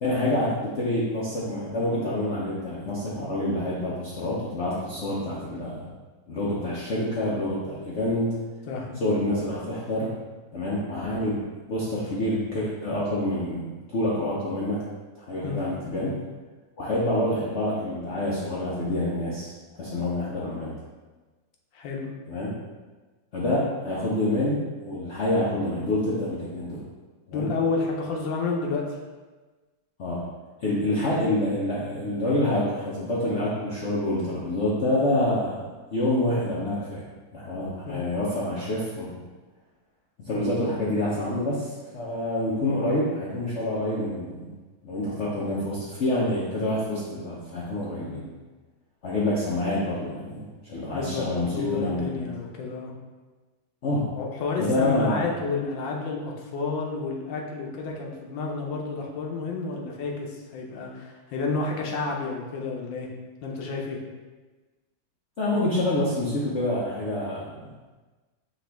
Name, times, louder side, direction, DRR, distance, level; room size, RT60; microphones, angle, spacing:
voice 1, 0.0-5.9 6.3-8.4 9.0-10.1 10.5-11.4 11.7-14.8 15.1-16.2 16.8-20.7 22.3-22.5 23.3-26.8 27.3-27.5 30.0-30.3 30.6-35.6 35.9-37.0 37.3-39.2 40.3-44.5 44.8-48.2 49.0-52.3 53.8-54.1 54.6-55.3 65.4-67.7, left 1 dB, 65° left, -6 dB, 0.7 m, -27 dB
voice 2, 8.7-9.0 15.4-15.6 21.7-22.1 27.3-28.8 37.9-38.1 48.1-48.3 50.9-52.9 54.2-63.1 63.4-64.0, left 4 dB, 85° left, 0 dB, 1.5 m, -30 dB
5.1 x 3.0 x 3.4 m, 1.3 s
omnidirectional pair, 2.0 m